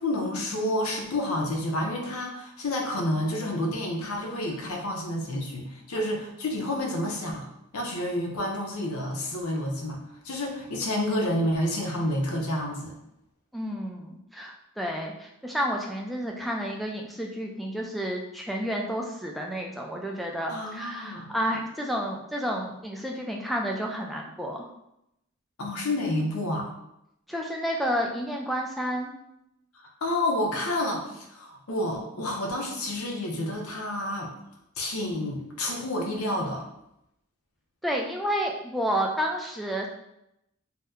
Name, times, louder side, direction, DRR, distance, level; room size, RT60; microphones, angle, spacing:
voice 1, 0.0-7.5 7.7-13.0 20.5-21.3 25.6-26.7 30.0-34.3 34.8-36.7, left 1 dB, 90° left, 1 dB, 0.7 m, -29 dB
voice 2, 13.5-24.6 27.3-29.1 37.8-39.9, equal, ahead, 0 dB, 0.3 m, -30 dB
2.7 x 2.1 x 3.5 m, 0.82 s
head